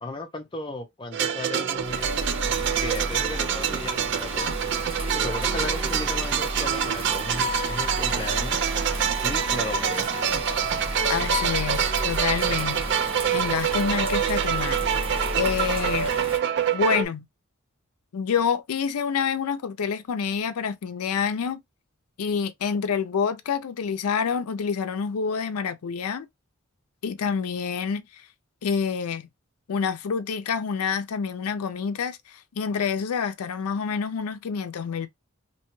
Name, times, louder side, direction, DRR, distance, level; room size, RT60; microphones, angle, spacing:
voice 1, 0.0-2.2 2.7-4.5 5.1-8.6 9.2-10.0, left 2 dB, 20° left, 0.5 m, -35 dB
sound 1, 1.1-17.1, right 7 dB, 50° right, 0.3 m, -26 dB
Bird vocalization bird call bird song / Rain, 1.7-16.4, right 1 dB, 25° right, 0.8 m, -33 dB
voice 2, 11.1-15.1 15.4-16.1 16.7-17.2 18.1-21.6 22.2-26.3 27.0-28.2 28.6-29.3 29.7-35.1, left 6 dB, 90° left, 0.4 m, -27 dB
2.9 x 2.2 x 3.0 m
head